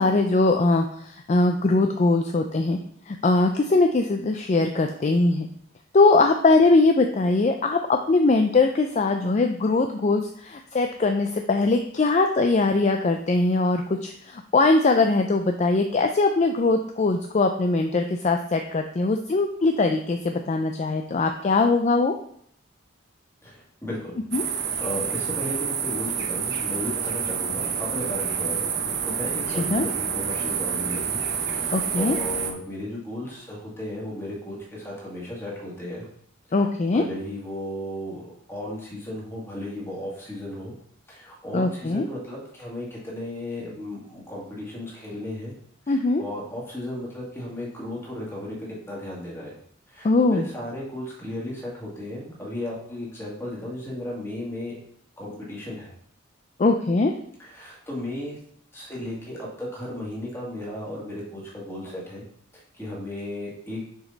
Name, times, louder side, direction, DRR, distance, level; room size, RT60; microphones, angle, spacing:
voice 1, 0.0-2.8 3.1-5.5 5.9-22.1 24.3-24.4 29.5-29.9 31.7-32.2 36.5-37.1 41.5-42.0 45.9-46.2 50.0-50.5 56.6-57.1, left 3 dB, 35° left, 5 dB, 0.4 m, -21 dB
voice 2, 23.4-24.1 24.8-28.7 29.0-36.0 36.5-36.6 36.9-40.7 41.1-45.5 45.9-48.6 48.9-49.5 49.9-54.7 55.2-55.9 57.4-58.4 58.7-62.2 62.7-63.8, left 1 dB, 10° left, -4 dB, 2.0 m, -35 dB
sound 1, 24.3-32.5, right 7 dB, 55° right, 0.8 m, -28 dB
6.4 x 5.1 x 3.9 m, 0.65 s
head